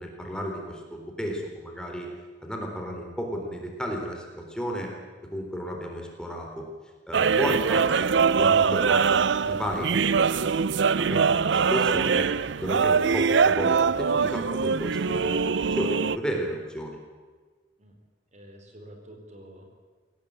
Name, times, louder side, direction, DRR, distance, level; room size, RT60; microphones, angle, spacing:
voice 1, 0.0-2.1 2.4-4.9 5.3-6.7 7.1-8.1 8.4-10.5 11.0-12.3 12.6-17.0, equal, 5° left, 1 dB, 3.8 m, -33 dB
sound 1, 7.1-16.2, right 5 dB, 80° right, 0.6 m, -23 dB
voice 2, 18.3-19.6, right 1 dB, 40° right, 4 dB, 4.0 m, -48 dB
23.0 x 17.5 x 8.8 m, 1.4 s
head